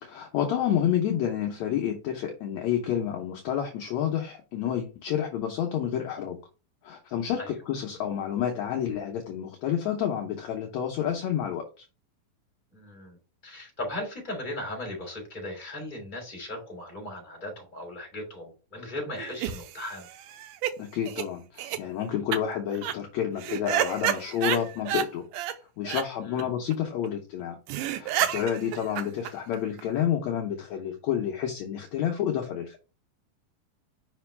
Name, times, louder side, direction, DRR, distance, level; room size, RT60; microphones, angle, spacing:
voice 1, 0.0-6.4 6.8-11.8 20.8-25.2 25.8-27.6 27.9-32.8, left 9 dB, 70° left, 2 dB, 1.9 m, -29 dB
voice 2, 12.7-13.2 13.4-20.1 26.2-26.5, left 1 dB, 15° left, 0 dB, 2.7 m, -37 dB
sound 1, 19.2-20.7 21.1-21.2 21.6-21.8 22.3-22.4 22.7-22.9 23.4-25.1 25.3-25.6 25.8-26.0 26.4-26.5 26.7-26.8 27.0-27.1 27.4-27.5 27.7-29.8, right 11 dB, 85° right, 2.2 m, -30 dB
5.5 x 5.2 x 3.3 m, 0.32 s
omnidirectional pair, 3.7 m